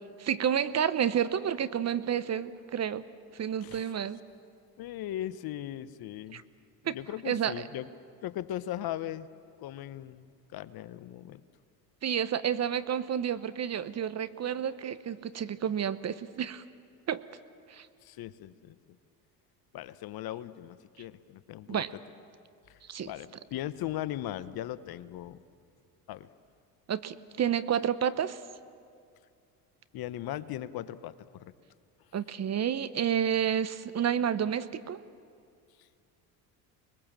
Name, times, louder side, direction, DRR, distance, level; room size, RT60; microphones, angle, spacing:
voice 1, 0.2-3.0 3.3-4.2 6.3-6.4 6.8-7.0 7.2-7.6 12.0-16.6 17.1-17.2 17.7-17.9 21.7-21.9 22.9-23.1 26.9-28.4 32.1-35.0, right 9 dB, 35° right, 15 dB, 0.9 m, -30 dB
voice 2, 3.6-3.9 4.8-6.4 6.9-7.9 8.2-9.3 9.6-11.4 18.0-18.8 19.7-21.9 22.7-22.8 23.0-25.4 26.1-26.3 29.9-31.5, left 13 dB, 50° left, 15 dB, 0.9 m, -38 dB
24.5 x 21.0 x 7.5 m, 2.4 s
supercardioid pair, 80°, 45 cm